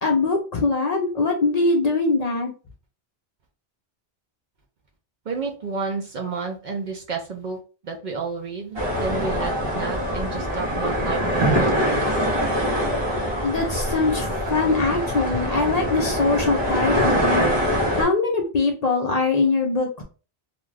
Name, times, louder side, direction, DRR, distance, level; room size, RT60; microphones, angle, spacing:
voice 1, 0.0-2.5 13.4-17.5 17.9-20.0, left 3 dB, 50° left, 1 dB, 0.6 m, -22 dB
voice 2, 5.3-7.6 7.8-12.1, right 4 dB, 55° right, 3 dB, 0.6 m, -31 dB
sound 1, 8.7-18.0, equal, 25° right, 0.9 m, -23 dB
2.4 x 2.3 x 3.2 m, 0.35 s
omnidirectional pair, 1.0 m